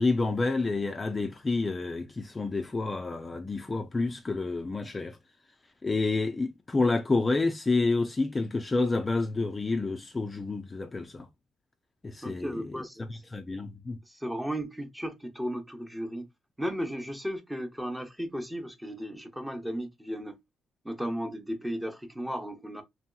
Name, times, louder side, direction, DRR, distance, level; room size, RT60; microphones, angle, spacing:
voice 1, 0.0-5.2 5.8-11.3 12.0-12.7 13.1-14.0, left 3 dB, 25° left, 0.4 m, -29 dB
voice 2, 12.2-13.2 14.1-16.3 16.6-20.4 20.8-22.8, equal, 5° right, 0.7 m, -35 dB
3.0 x 2.8 x 2.3 m
cardioid pair, 90°, 0 cm